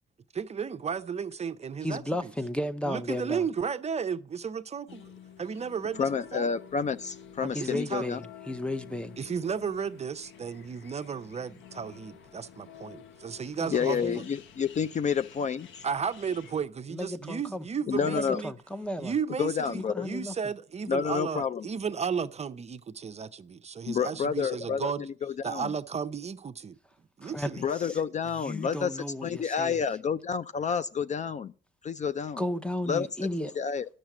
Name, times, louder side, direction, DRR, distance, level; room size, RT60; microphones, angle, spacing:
voice 1, 0.3-2.3 2.9-5.1 5.4-6.5 7.4-8.1 9.2-14.1 15.8-18.5 19.0-25.1 25.4-26.8 27.2-27.6, right 6 dB, 35° right, 0.5 m, -34 dB
voice 2, 1.8-3.4 7.5-9.2 13.6-13.7 14.0-14.2 16.9-17.7 18.0-19.1 19.7-20.3 27.2-28.0 28.4-29.8 32.4-33.5, left 1 dB, 5° left, 0.7 m, -34 dB
sound 1, 4.9-16.7, left 8 dB, 70° left, 0.9 m, -50 dB
voice 3, 6.0-8.2 13.7-15.7 17.9-18.4 19.4-20.1 20.9-21.7 23.9-25.7 27.6-31.5 31.8-32.4 32.9-33.1 33.4-33.9, left 6 dB, 40° left, 0.4 m, -29 dB
10.0 x 6.6 x 6.0 m
cardioid pair, 90°, 20 cm